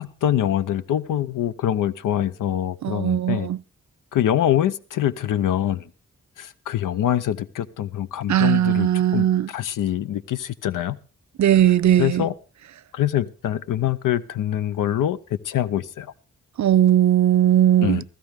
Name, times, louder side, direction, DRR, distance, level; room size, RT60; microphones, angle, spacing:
voice 1, 0.0-3.5 4.1-5.8 6.4-9.3 9.5-11.0 12.0-12.3 12.9-15.2 15.5-16.1 17.8-18.0, left 11 dB, 90° left, 0.6 m, -24 dB
voice 2, 2.8-3.6 8.3-9.5 11.4-12.3 16.6-18.0, right 11 dB, 65° right, 0.6 m, -18 dB
16.5 x 14.0 x 3.5 m
supercardioid pair, 40°, 31 cm